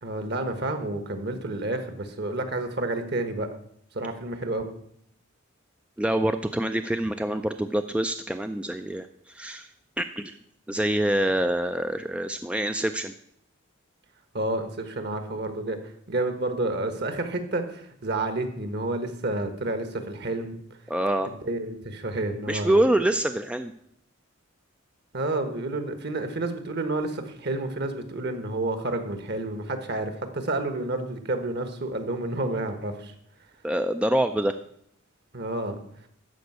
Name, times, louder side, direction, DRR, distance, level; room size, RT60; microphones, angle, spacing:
voice 1, 0.0-3.5 3.9-4.7 14.3-15.8 16.1-20.5 21.5-22.8 25.1-33.1 35.3-35.8, right 2 dB, 55° right, 8 dB, 1.4 m, -30 dB
voice 2, 6.0-9.7 10.0-10.4 10.7-13.1 20.9-21.3 22.5-23.7 33.6-34.6, right 1 dB, 5° right, 8 dB, 0.3 m, -25 dB
13.0 x 5.2 x 7.9 m, 0.71 s
head